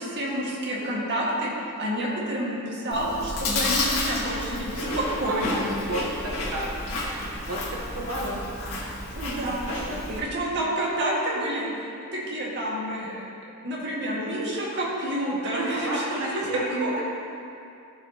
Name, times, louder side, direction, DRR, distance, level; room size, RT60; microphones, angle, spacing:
voice 1, 0.0-1.5 1.8-5.6 9.2-9.7 10.2-11.7 12.0-13.2 13.6-16.9, right 1 dB, 55° right, -5 dB, 1.8 m, -29 dB
Chewing mastication, 2.9-10.2, left 2 dB, 85° left, 1.8 m, -31 dB
voice 2, 4.8-8.6 9.7-10.3 15.4-17.0, right 1 dB, 90° right, -4 dB, 1.0 m, -33 dB
14.5 x 5.4 x 2.9 m, 2.6 s
head